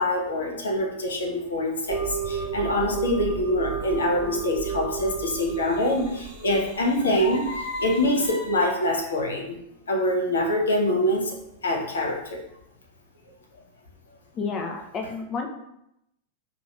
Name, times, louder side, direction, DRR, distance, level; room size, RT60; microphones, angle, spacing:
voice 1, 0.0-9.6 9.9-11.4 11.6-12.4, left 1 dB, 70° left, 0 dB, 0.8 m, -25 dB
sound 1, 1.9-8.3, right 6 dB, 50° right, 0.6 m, -33 dB
voice 2, 14.3-15.5, left 4 dB, 30° left, 3 dB, 0.6 m, -30 dB
4.9 x 3.2 x 2.5 m, 0.81 s
figure-of-eight pair, 90°, 0 cm